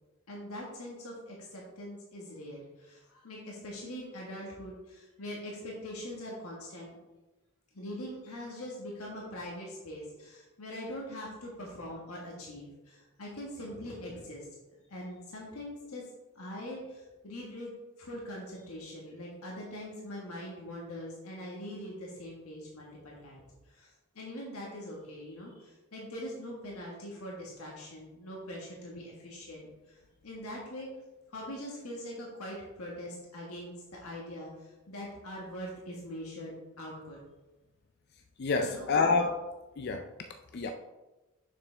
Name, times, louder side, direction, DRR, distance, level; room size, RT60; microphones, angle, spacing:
voice 1, 0.3-7.0 7.7-14.5 14.9-16.0 16.3-17.7 18.0-30.9 31.3-37.2 38.6-38.9, left 1 dB, 90° left, -3 dB, 1.5 m, -42 dB
voice 2, 38.4-39.5 39.8-40.1 40.5-40.7, left 4 dB, 45° left, 5 dB, 0.4 m, -28 dB
6.9 x 6.6 x 3.3 m, 1.1 s
head